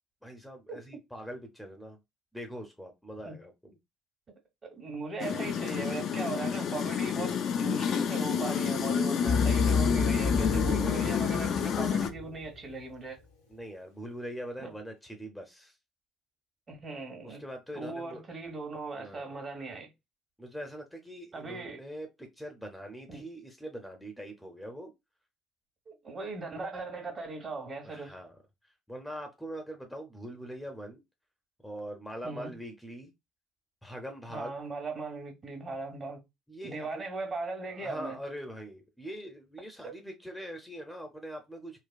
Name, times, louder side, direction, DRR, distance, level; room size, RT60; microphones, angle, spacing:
voice 1, 0.2-2.0 2.3-3.8 9.5-9.7 13.5-15.7 17.2-18.2 19.0-19.4 20.4-24.9 27.8-28.4 28.9-31.0 31.6-33.1 33.8-34.6 36.5-37.1 37.7-41.8, equal, 5° left, 0.8 m, -42 dB
voice 2, 4.7-13.2 14.6-14.7 16.7-17.4 17.7-19.9 21.3-21.8 23.1-23.2 25.9-28.1 32.2-32.5 34.3-36.2 36.6-38.2 39.8-39.9, right 3 dB, 35° right, 1.4 m, -38 dB
sound 1, 5.2-12.1, left 7 dB, 50° left, 0.5 m, -29 dB
sound 2, 9.3-12.7, left 4 dB, 75° left, 0.9 m, -30 dB
3.9 x 2.3 x 2.3 m
figure-of-eight pair, 55°, 0 cm